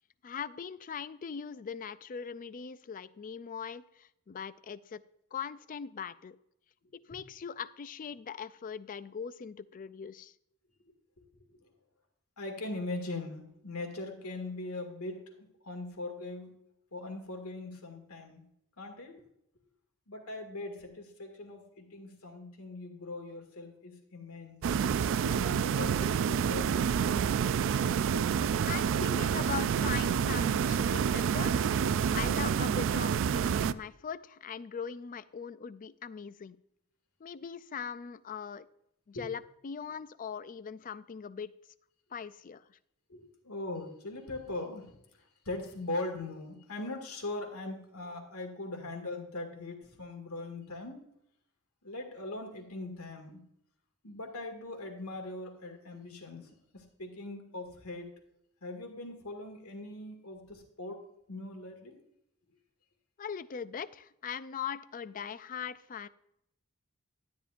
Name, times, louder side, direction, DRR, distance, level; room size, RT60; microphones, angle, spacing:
voice 1, 0.2-5.0 5.3-6.4 6.9-10.3 28.7-31.7 32.1-36.6 37.2-38.7 39.1-41.5 42.1-42.8 63.2-66.1, left 7 dB, 40° left, 16 dB, 0.4 m, -40 dB
voice 2, 12.4-16.5 16.9-18.4 18.8-19.2 20.1-24.8 25.2-27.4 28.1-28.2 29.0-29.1 39.1-39.2 43.1-51.0 51.8-53.4 54.0-58.1 58.6-61.0 61.3-62.0, left 2 dB, 80° left, 3 dB, 2.1 m, -41 dB
sound 1, 24.6-33.7, right 7 dB, 60° right, 0.3 m, -28 dB
12.5 x 10.5 x 2.5 m, 0.78 s
head